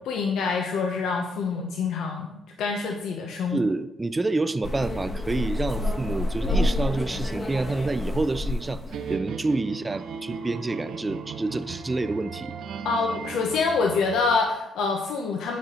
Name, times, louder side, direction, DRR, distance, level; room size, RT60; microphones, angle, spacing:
voice 1, 0.1-3.6 12.8-15.6, left 4 dB, 80° left, 2 dB, 0.7 m, -26 dB
voice 2, 3.5-8.8 9.1-12.5, right 2 dB, 20° right, 12 dB, 0.4 m, -28 dB
sound 1, 4.6-9.1, left 1 dB, 30° left, 1.1 m, -28 dB
sound 2, 8.9-14.4, right 6 dB, 70° right, 0.6 m, -36 dB
9.4 x 4.2 x 3.8 m, 0.88 s
cardioid pair, 90°, 0 cm